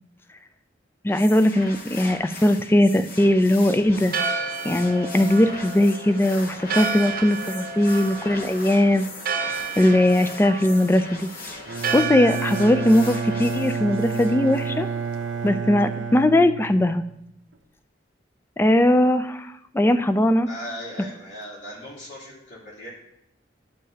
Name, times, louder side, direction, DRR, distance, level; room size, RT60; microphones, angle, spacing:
voice 1, 1.0-4.1 4.6-9.1 9.8-11.3 11.9-14.9 15.4-17.0 18.6-19.5 19.7-20.5, left 1 dB, 15° left, 10 dB, 0.3 m, -19 dB
sound 1, 1.1-14.7, left 3 dB, 55° left, 0.9 m, -40 dB
Church bell, 3.9-15.5, right 4 dB, 50° right, 0.8 m, -32 dB
Bowed string instrument, 11.7-17.2, right 6 dB, 85° right, 0.7 m, -30 dB
voice 2, 20.5-22.9, equal, 70° left, -5 dB, 3.1 m, -38 dB
12.0 x 6.6 x 2.8 m, 0.78 s
head